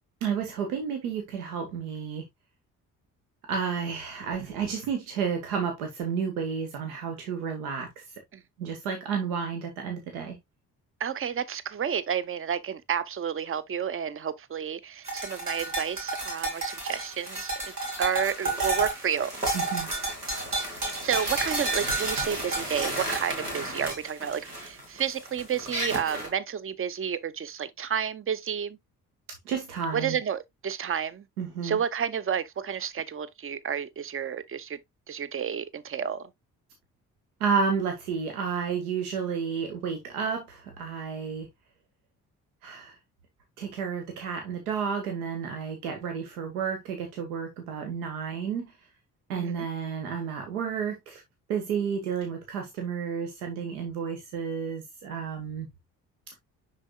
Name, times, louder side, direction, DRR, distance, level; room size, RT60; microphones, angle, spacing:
voice 1, 0.2-2.2 3.5-7.9 8.6-10.4 19.5-19.9 29.4-30.2 31.4-31.8 37.4-41.5 42.6-42.9 43.6-48.7 49.3-51.2 51.5-55.7 56.3-56.4, right 6 dB, 70° right, 1.5 m, -31 dB
voice 2, 11.0-17.7 18.0-19.4 20.9-28.8 29.9-31.3 31.6-34.8 35.1-36.3 49.3-49.7, right 8 dB, 30° right, 0.9 m, -31 dB
sound 1, 15.1-26.3, right 2 dB, 90° right, 1.9 m, -31 dB
9.9 x 4.4 x 2.3 m
figure-of-eight pair, 40°, 45 cm